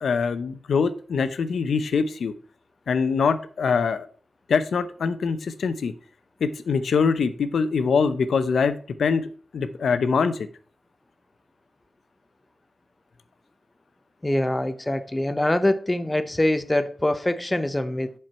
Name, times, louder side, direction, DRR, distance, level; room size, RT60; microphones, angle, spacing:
voice 1, 0.0-2.3 2.9-4.1 4.5-5.9 6.4-9.3 9.5-10.4, left 5 dB, 80° left, 0.7 m, -23 dB
voice 2, 14.2-18.1, left 1 dB, 10° left, 0.5 m, -24 dB
7.6 x 4.5 x 5.5 m
wide cardioid pair, 145°, 0 cm